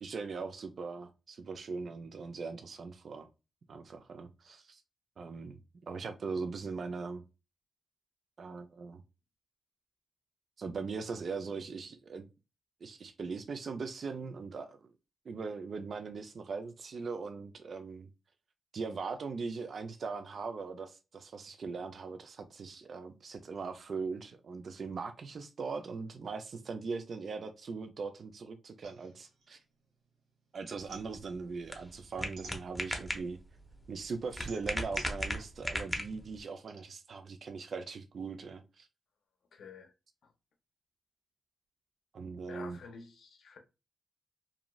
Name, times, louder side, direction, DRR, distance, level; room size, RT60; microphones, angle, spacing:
voice 1, 0.0-3.3 3.7-4.8 5.2-7.2 8.4-9.0 10.6-12.3 12.8-14.9 15.3-18.1 18.7-29.6 30.5-33.4 33.9-38.9 42.1-42.8, right 4 dB, 50° right, 0.3 m, -40 dB
sound 1, 28.8-30.3 30.6-33.2 33.6-36.8, right 2 dB, 90° right, 0.9 m, -53 dB
sound 2, 30.8-36.4, left 1 dB, 10° left, 0.5 m, -38 dB
voice 2, 39.5-39.9 40.2-40.3 42.5-43.6, left 5 dB, 70° left, 0.5 m, -50 dB
2.5 x 2.3 x 3.0 m
wide cardioid pair, 130°, 0 cm